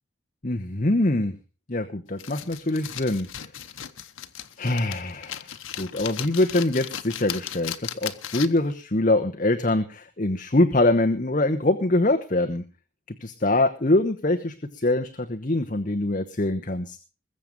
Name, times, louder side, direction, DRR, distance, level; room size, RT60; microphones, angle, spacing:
voice 1, 0.4-1.4 1.7-3.5 4.6-5.5 5.8-12.6 13.2-17.0, left 2 dB, 40° left, 6 dB, 1.0 m, -24 dB
sound 1, 2.2-8.7, left 10 dB, 80° left, 1.0 m, -36 dB
21.5 x 7.5 x 5.2 m, 0.34 s
head